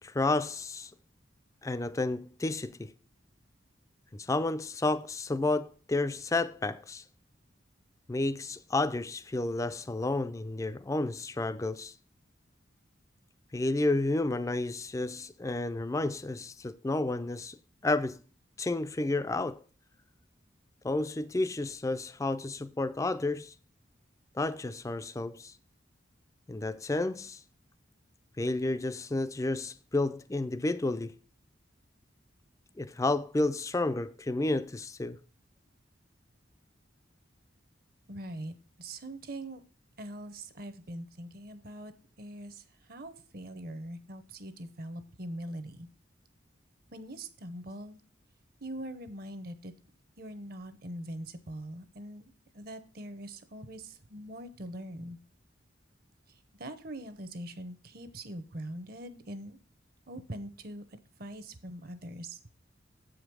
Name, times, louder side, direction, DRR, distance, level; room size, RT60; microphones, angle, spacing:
voice 1, 0.0-0.9 1.6-2.9 4.1-7.0 8.1-11.9 13.5-17.6 17.8-18.2 18.6-19.6 20.8-23.5 24.3-25.5 26.5-27.4 28.4-31.1 32.8-35.2, left 2 dB, 15° left, 0.3 m, -31 dB
voice 2, 38.1-39.6 40.0-41.9 42.2-45.9 46.9-48.0 48.6-49.7 50.2-55.2 56.3-59.6 60.1-60.8 61.2-62.4, right 1 dB, 50° right, 0.8 m, -42 dB
7.7 x 5.1 x 6.1 m
head